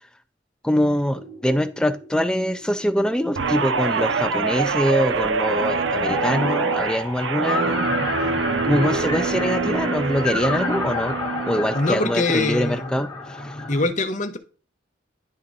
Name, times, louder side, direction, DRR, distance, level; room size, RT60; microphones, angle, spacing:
voice 1, 0.6-7.9 8.6-11.2 11.5-13.6, equal, 5° left, 12 dB, 0.3 m, -24 dB
sound 1, 1.2-13.9, left 3 dB, 25° left, 2.0 m, -31 dB
Guitar, 3.4-11.9 12.3-12.7, right 4 dB, 75° right, 0.7 m, -25 dB
voice 2, 11.7-13.0 13.7-14.4, left 2 dB, 40° left, 8 dB, 0.9 m, -23 dB
10.5 x 3.7 x 4.0 m, 0.36 s
head